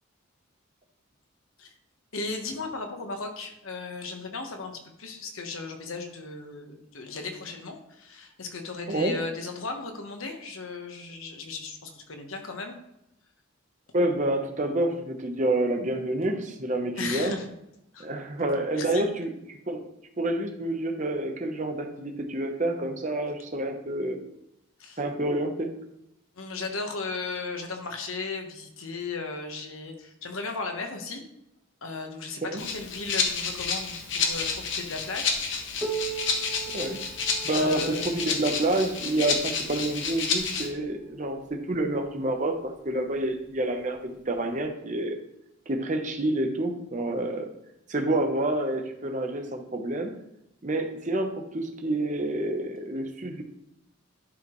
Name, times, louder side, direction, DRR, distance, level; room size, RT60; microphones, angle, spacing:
voice 1, 2.1-12.7 16.9-17.5 17.9-18.1 18.7-19.1 24.8-25.0 26.4-31.2 31.8-35.4 37.5-38.2, left 3 dB, 80° left, 4 dB, 1.2 m, -36 dB
voice 2, 13.9-17.4 18.0-19.3 19.7-19.9 20.2-24.2 25.0-25.7 32.5-32.6 36.7-37.0 37.4-44.0 44.3-45.2 45.7-47.5 47.9-50.1 50.6-53.4, right 1 dB, 35° right, 4 dB, 0.9 m, -28 dB
Rattle (instrument), 32.6-40.7, left 5 dB, 60° left, 1.1 m, -30 dB
Piano, 35.8-41.1 42.0-42.1 42.6-42.7 43.5-43.6 44.6-44.7, right 6 dB, 10° right, 1.0 m, -39 dB
11.0 x 4.9 x 3.1 m, 0.82 s
head